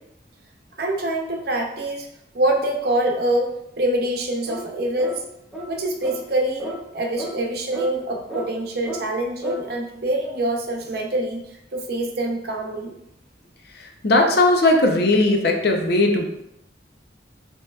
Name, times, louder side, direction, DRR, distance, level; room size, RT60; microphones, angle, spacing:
voice 1, 0.8-2.1 2.3-3.5 3.8-5.2 5.6-11.4 11.7-13.0, right 1 dB, 60° right, 1 dB, 0.7 m, -25 dB
sound 1, 4.5-4.7 5.0-5.2 5.5-5.7 6.0-6.2 6.6-6.8 7.2-7.3 7.7-7.9 8.3-8.5 8.8-9.0 9.4-9.6, right 1 dB, ahead, 0.8 m, -32 dB
voice 2, 13.8-16.3, left 2 dB, 60° left, 3 dB, 0.6 m, -18 dB
5.4 x 2.9 x 2.3 m, 0.81 s
head